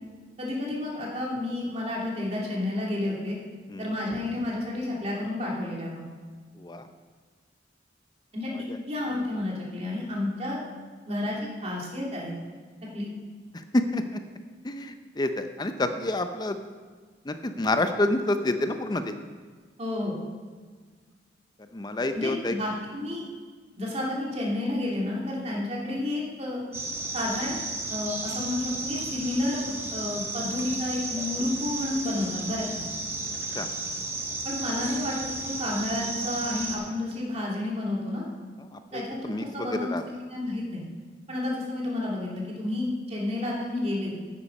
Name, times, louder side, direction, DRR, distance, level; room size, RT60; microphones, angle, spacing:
voice 1, 0.4-3.4 3.8-6.0 8.3-8.5 8.9-10.6 11.1-11.4 11.6-12.3 12.9-13.1 19.8-20.1 22.1-23.2 23.8-26.6 27.1-27.6 27.9-32.8 34.4-38.3 38.9-40.9 41.3-44.2, left 1 dB, 35° right, -3 dB, 2.8 m, -30 dB
voice 2, 13.7-14.2 14.6-16.6 17.3-19.1 21.7-22.6 25.5-25.6 33.5-33.7 38.7-40.0, left 2 dB, 25° left, 8 dB, 0.6 m, -28 dB
sound 1, 26.7-36.8, right 2 dB, 15° right, 1.4 m, -34 dB
9.8 x 8.4 x 5.3 m, 1.5 s
head